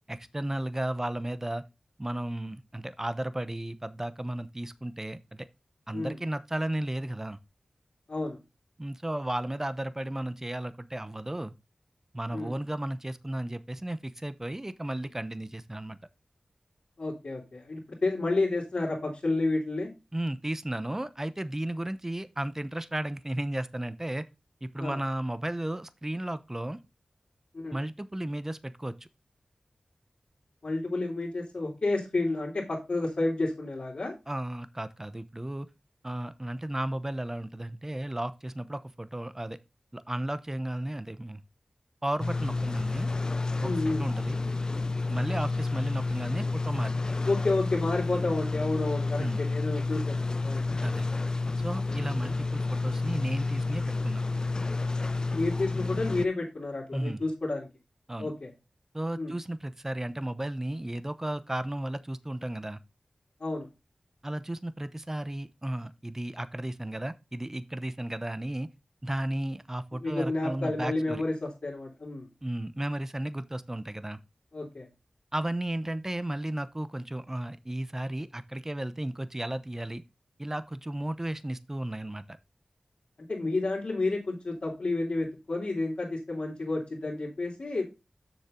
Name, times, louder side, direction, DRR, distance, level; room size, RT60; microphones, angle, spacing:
voice 1, 0.1-1.6 2.0-5.5 5.9-7.4 8.8-11.5 12.1-16.0 20.1-24.3 24.6-26.8 27.7-28.9 34.3-35.7 36.0-39.6 39.9-41.4 42.0-43.1 43.6-44.4 45.1-47.0 49.2-49.5 50.8-51.1 51.6-54.2 56.9-57.2 58.1-58.3 58.9-62.8 64.2-68.7 69.0-71.2 72.4-74.2 75.3-80.0 80.4-82.4, right 1 dB, 20° right, 0.8 m, -34 dB
voice 2, 17.0-19.9 24.8-25.0 27.5-27.8 30.6-34.1 43.6-44.1 47.3-50.7 55.3-57.7 58.2-58.5 59.2-59.3 63.4-63.7 70.0-72.3 74.5-74.9 83.3-87.8, left 2 dB, 65° left, 2.9 m, -30 dB
sound 1, 42.2-56.3, left 3 dB, 40° left, 0.3 m, -30 dB
7.1 x 6.6 x 3.7 m
wide cardioid pair, 50°, 2 cm